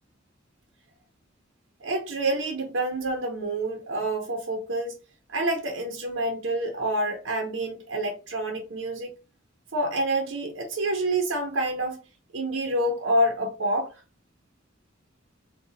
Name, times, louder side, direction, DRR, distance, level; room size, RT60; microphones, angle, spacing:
voice 1, 1.8-4.9 5.3-9.1 9.7-12.0 12.3-14.0, right 1 dB, 85° right, 0.8 m, -27 dB
3.8 x 2.3 x 3.9 m
head